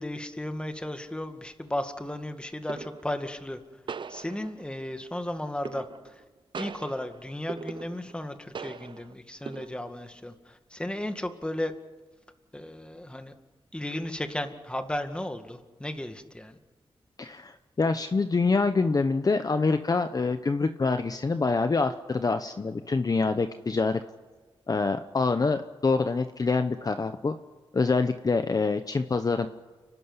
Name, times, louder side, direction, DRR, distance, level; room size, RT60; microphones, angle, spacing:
voice 1, 0.0-3.6 4.1-5.8 6.6-10.3 10.7-11.7 12.5-13.3 13.7-16.6, left 1 dB, 10° left, 7 dB, 2.0 m, -34 dB
sound 1, 1.1-1.4 2.7-3.2 3.9-4.8 5.7-6.2 6.5-8.3 8.6-9.1 9.5-10.1, right 5 dB, 55° right, 0.7 m, -40 dB
voice 2, 17.2-24.0 24.7-27.4 27.7-29.5, left 4 dB, 40° left, 9 dB, 0.9 m, -26 dB
30.0 x 12.5 x 9.7 m, 1.3 s
wide cardioid pair, 90°, 10 cm